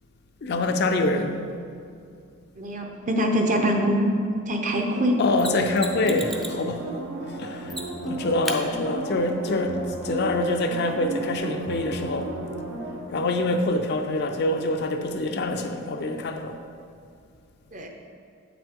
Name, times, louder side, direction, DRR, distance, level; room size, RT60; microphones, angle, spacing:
voice 1, 0.4-1.5 5.2-6.9 7.3-12.4 13.1-16.6, left 2 dB, 50° left, 6 dB, 0.5 m, -25 dB
voice 2, 2.6-4.1 4.5-5.1 17.7-17.9, equal, 35° right, 3 dB, 0.7 m, -24 dB
sound 1, 4.9-14.3 14.7-14.8, right 2 dB, 75° right, 1.0 m, -34 dB
Mechanisms, 5.4-6.6 7.7-8.1 8.4-8.6 11.4-11.5, equal, ahead, 0.4 m, -34 dB
8.0 x 5.9 x 3.7 m, 2.4 s
head